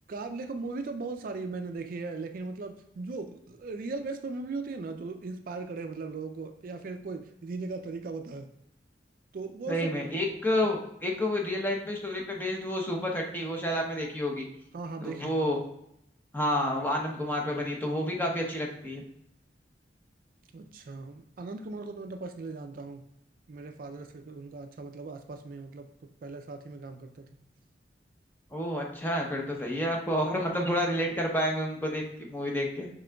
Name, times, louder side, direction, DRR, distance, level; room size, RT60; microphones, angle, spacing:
voice 1, 0.1-8.5 9.3-9.9 14.7-15.3 20.5-23.1 23.5-25.9 26.2-27.3, right 3 dB, 50° right, 7 dB, 0.4 m, -38 dB
voice 2, 9.7-14.5 15.0-15.6 16.3-19.0 28.5-32.9, left 1 dB, 10° left, 0 dB, 0.7 m, -30 dB
6.1 x 3.7 x 2.2 m, 0.78 s
head